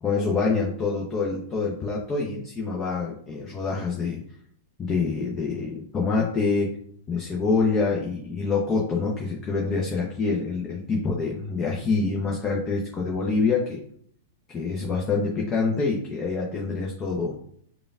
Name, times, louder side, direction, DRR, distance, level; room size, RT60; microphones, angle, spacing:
voice 1, 0.0-4.2 4.8-6.7 7.1-13.8 14.5-17.3, left 4 dB, 20° left, -2 dB, 0.7 m, -26 dB
5.0 x 2.4 x 2.4 m, 0.64 s
figure-of-eight pair, 100°, 0 cm